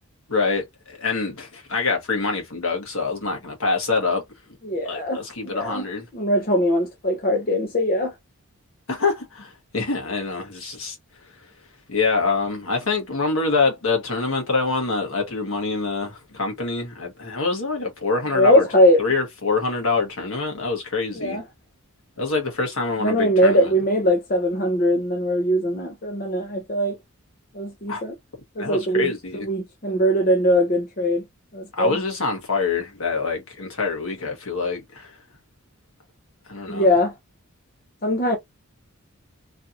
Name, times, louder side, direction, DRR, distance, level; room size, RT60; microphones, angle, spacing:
voice 1, 0.3-4.2 4.8-6.0 8.9-11.0 11.9-18.7 19.0-21.4 22.2-23.7 27.9-28.0 28.6-29.5 31.7-35.2 36.5-36.9, left 4 dB, 70° left, 1.5 m, -25 dB
voice 2, 4.6-5.8 6.1-8.1 18.3-19.0 21.2-21.4 23.0-27.0 27.5-28.1 28.6-29.1 29.5-31.2 31.5-32.0 36.7-37.1 38.0-38.4, equal, 40° left, 0.7 m, -21 dB
3.2 x 2.8 x 2.6 m
head